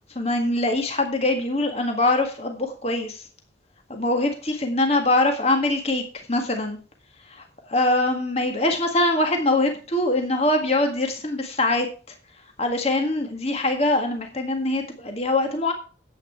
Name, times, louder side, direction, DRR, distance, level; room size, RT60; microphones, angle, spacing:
voice 1, 0.2-3.2 3.9-6.0 6.3-6.8 7.3-11.9 12.6-15.7, left 2 dB, 35° left, 4 dB, 1.8 m, -23 dB
10.5 x 8.5 x 4.6 m, 0.37 s
head